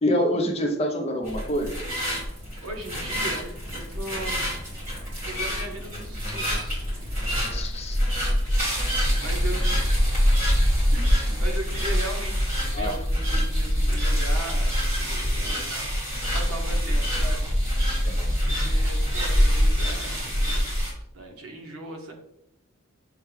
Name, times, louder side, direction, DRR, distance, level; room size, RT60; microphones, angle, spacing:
voice 1, 0.0-1.8 7.5-8.0 8.5-8.6 12.7-13.0 15.3-15.7 18.1-18.4, equal, 30° left, 3 dB, 0.6 m, -27 dB
sound 1, 1.2-20.9, equal, 40° right, 1.8 m, -25 dB
voice 2, 2.6-4.6 5.2-7.1 8.5-10.2 10.9-17.5 18.4-22.1, right 2 dB, 80° right, 2 dB, 1.0 m, -39 dB
6.6 x 2.3 x 3.3 m, 0.77 s
head